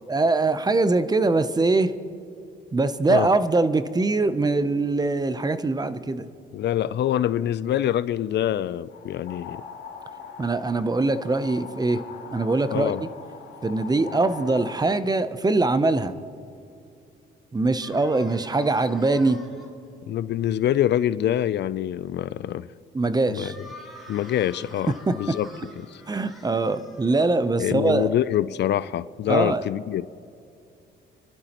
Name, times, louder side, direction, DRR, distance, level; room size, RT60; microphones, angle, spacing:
voice 1, 0.1-1.9 2.7-6.3 10.4-12.0 12.3-12.9 13.6-16.2 17.5-19.4 22.9-23.5 25.1-25.2 26.1-28.1 29.3-29.6, right 3 dB, 20° right, 12 dB, 0.7 m, -22 dB
voice 2, 6.5-9.6 12.7-13.0 20.1-22.7 23.3-23.5 24.1-25.5 25.8-26.0 27.6-30.1, left 11 dB, 60° left, 17 dB, 0.4 m, -25 dB
ns birds, 8.9-14.8, left 6 dB, 80° left, 3.9 m, -41 dB
sound 1, 17.8-19.7 23.3-27.7, left 1 dB, ahead, 3.7 m, -47 dB
30.0 x 12.0 x 3.0 m, 2.6 s
cardioid pair, 90°, 20 cm